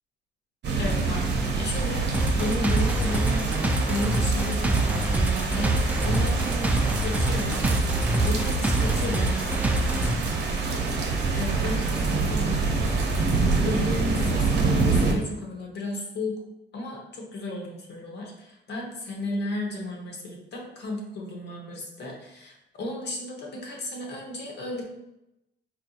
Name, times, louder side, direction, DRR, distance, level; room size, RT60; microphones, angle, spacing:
sound 1, 0.6-15.1, right 3 dB, 60° right, 0.7 m, -26 dB
voice 1, 0.8-1.3 1.6-2.1 2.3-7.7 8.2-12.8 13.4-16.4 16.7-24.8, left 1 dB, 60° left, 0 dB, 1.0 m, -34 dB
sound 2, 2.1-10.1, right 1 dB, 10° right, 0.3 m, -25 dB
4.3 x 2.6 x 2.4 m, 0.90 s
cardioid pair, 90°, 20 cm